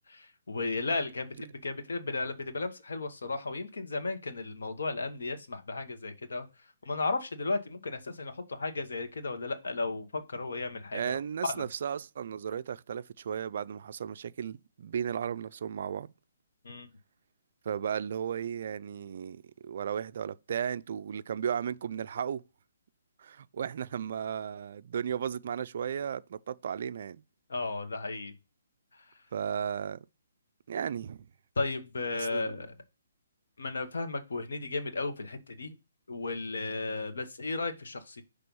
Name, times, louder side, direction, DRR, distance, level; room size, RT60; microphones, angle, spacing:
voice 1, 0.1-6.5 6.8-11.2 11.5-11.7 16.6-16.9 27.5-28.3 31.6-32.7 33.6-35.8 36.1-38.2, left 3 dB, 80° left, 1.2 m, -34 dB
voice 2, 10.9-16.1 17.7-22.4 23.2-27.2 29.3-30.0 30.7-31.3 32.1-32.5, right 8 dB, 50° right, 0.3 m, -35 dB
6.0 x 3.4 x 5.3 m
hypercardioid pair, 165°, 0 cm